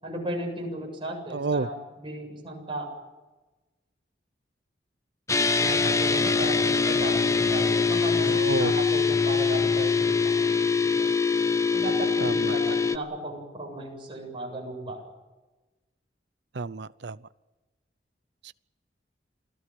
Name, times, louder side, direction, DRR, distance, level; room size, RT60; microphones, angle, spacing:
voice 1, 0.0-2.9 5.6-8.3 8.6-10.5 10.8-11.1 11.7-15.0, right 1 dB, 30° right, 1 dB, 7.5 m, -36 dB
voice 2, 1.3-1.7 8.2-8.7 12.2-12.7 16.5-17.2 18.4-18.5, right 3 dB, 70° right, 17 dB, 0.7 m, -30 dB
sound 1, 5.3-13.0, left 4 dB, 15° left, 0.7 m, -23 dB
28.0 x 18.0 x 7.8 m, 1.2 s
head